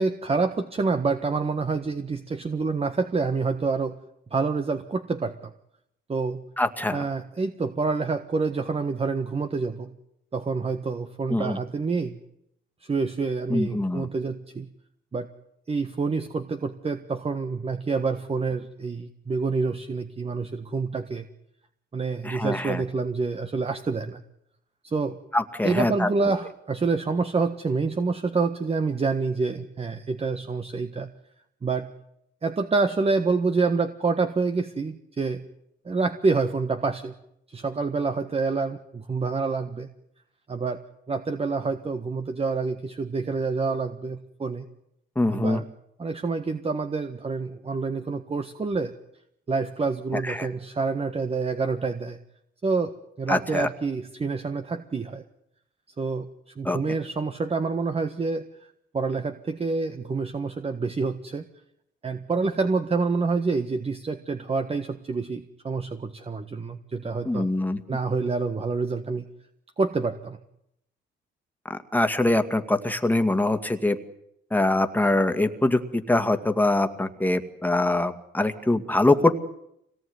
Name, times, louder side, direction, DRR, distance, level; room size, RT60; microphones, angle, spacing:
voice 1, 0.0-4.0 4.3-5.5 6.1-6.4 6.9-9.9 10.3-12.2 12.8-14.7 15.1-15.3 15.7-21.3 21.9-24.2 24.8-25.2 25.6-31.1 31.6-31.9 32.4-35.4 35.8-37.1 37.5-39.9 40.5-40.8 41.1-44.6 45.3-45.6 46.0-48.9 49.5-52.2 52.6-55.2 56.0-56.3 56.5-58.5 58.9-61.5 62.0-67.5 67.9-69.3 69.8-70.4, right 4 dB, 30° right, 8 dB, 1.6 m, -27 dB
voice 2, 6.6-7.0 11.3-11.6 13.5-14.1 22.2-22.8 25.3-26.1 45.2-45.6 50.1-50.5 53.3-53.7 56.6-56.8 67.2-67.8 71.7-74.0 74.5-79.3, left 2 dB, 10° left, 7 dB, 2.2 m, -23 dB
25.5 x 18.5 x 9.7 m, 0.79 s
cardioid pair, 90°, 20 cm